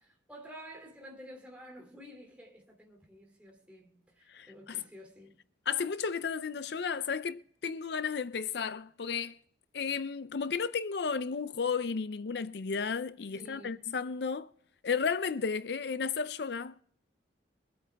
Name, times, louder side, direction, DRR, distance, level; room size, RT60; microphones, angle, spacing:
voice 1, 0.3-5.4 13.3-13.9, equal, 5° right, 2.9 m, -51 dB
voice 2, 4.3-4.8 5.7-9.4 9.7-14.5 14.8-16.8, left 5 dB, 65° left, 0.5 m, -33 dB
23.5 x 8.6 x 3.5 m
head